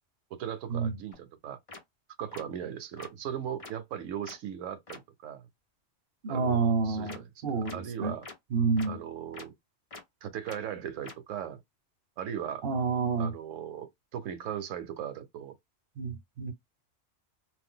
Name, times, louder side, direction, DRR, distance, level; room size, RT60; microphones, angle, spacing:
voice 1, 0.3-1.6 2.2-5.5 6.3-8.2 8.9-9.5 10.2-11.6 12.2-12.7 13.2-15.6, right 9 dB, 90° right, 1.0 m, -38 dB
sound 1, 1.1-1.2 1.7-1.8 2.3-2.4 3.0-3.1 3.6-3.7 4.2-4.3 4.9-5.0 7.1-7.2 7.6-7.8 8.2-8.3 8.8-8.9 9.3-9.4 9.9-10.0 10.5-10.6 11.0-11.1, left 3 dB, 30° left, 0.7 m, -44 dB
voice 2, 6.2-8.1 8.5-9.0 12.6-13.3 16.0-16.5, right 4 dB, 55° right, 0.9 m, -29 dB
2.5 x 2.3 x 3.7 m
omnidirectional pair, 1.3 m